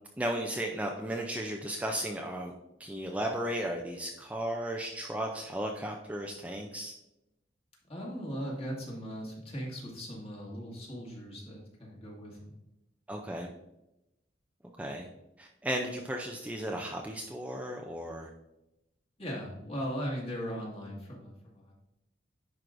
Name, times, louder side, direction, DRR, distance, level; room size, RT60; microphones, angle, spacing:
voice 1, 0.2-2.5 2.8-6.9 13.1-13.5 14.8-15.1 15.4-18.3, right 1 dB, 10° right, 1 dB, 0.4 m, -35 dB
voice 2, 7.9-12.5 19.2-21.7, equal, 30° left, -3 dB, 1.9 m, -38 dB
10.5 x 4.7 x 2.6 m, 0.91 s
head